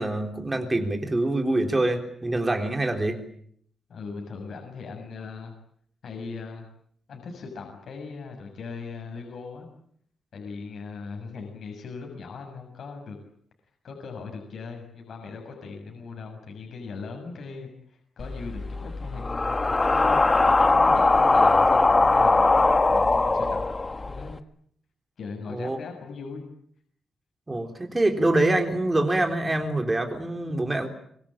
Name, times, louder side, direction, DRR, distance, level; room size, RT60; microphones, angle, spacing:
voice 1, 0.0-3.2 25.5-25.8 27.5-30.9, right 2 dB, 15° right, 4 dB, 3.7 m, -25 dB
voice 2, 3.9-5.5 6.0-6.7 7.1-9.7 10.3-13.2 13.8-22.6 22.9-23.7 24.1-24.4 25.2-26.4, left 4 dB, 55° left, 3 dB, 7.0 m, -39 dB
sound 1, 18.2-24.3, left 3 dB, 20° left, 1.5 m, -21 dB
25.5 x 24.5 x 8.9 m, 0.66 s
wide cardioid pair, 160°, 0 cm